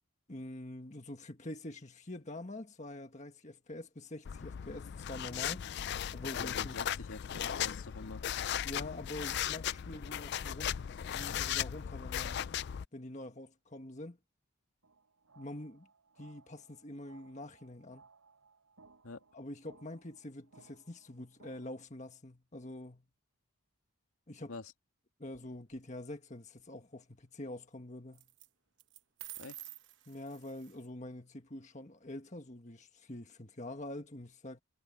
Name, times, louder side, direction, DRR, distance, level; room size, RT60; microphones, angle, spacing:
voice 1, 0.3-5.7 6.1-6.8 8.6-10.7 11.1-12.5 12.9-14.2 15.4-15.9 16.2-18.0 19.3-23.0 24.3-24.5 25.2-28.3 30.1-34.6, left 1 dB, 35° left, 1.7 m, -45 dB
sound 1, 4.3-12.9, left 10 dB, 50° left, 0.3 m, -37 dB
voice 2, 6.4-8.2 19.0-19.2 24.5-24.7 29.4-29.6, left 3 dB, 85° left, 2.1 m, -46 dB
sound 2, 14.8-21.8, right 4 dB, 85° right, 4.0 m, -63 dB
sound 3, 25.3-25.8 28.1-28.5 28.8-30.8, right 15 dB, 55° right, 1.0 m, -50 dB
head